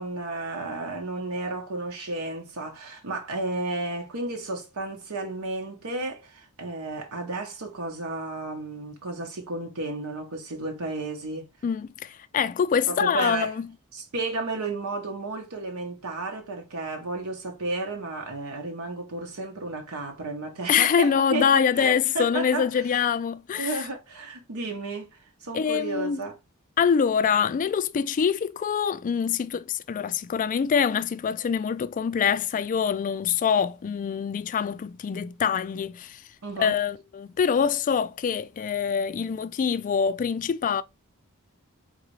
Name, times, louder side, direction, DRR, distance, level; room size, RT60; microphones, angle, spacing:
voice 1, 0.0-11.5 12.9-13.5 13.9-22.8 23.6-26.4 36.4-36.8, right 2 dB, 70° right, 0.9 m, -33 dB
voice 2, 11.6-13.7 20.7-23.8 25.5-26.2 26.8-36.2 36.6-40.8, left 7 dB, 35° left, 0.3 m, -25 dB
4.0 x 3.6 x 3.1 m
head